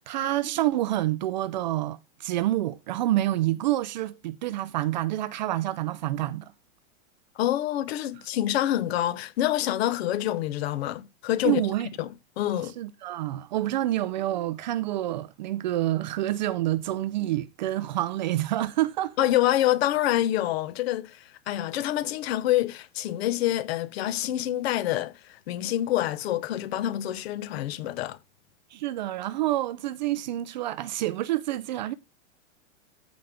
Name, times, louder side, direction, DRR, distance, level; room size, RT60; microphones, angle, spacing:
voice 1, 0.1-6.5 11.4-11.9 12.8-19.3 28.7-31.9, right 14 dB, 35° right, 0.4 m, -28 dB
voice 2, 7.4-11.6 12.0-12.1 12.4-12.7 19.2-28.2, left 13 dB, 50° left, 0.9 m, -27 dB
14.5 x 5.2 x 3.4 m
supercardioid pair, 165°, 40 cm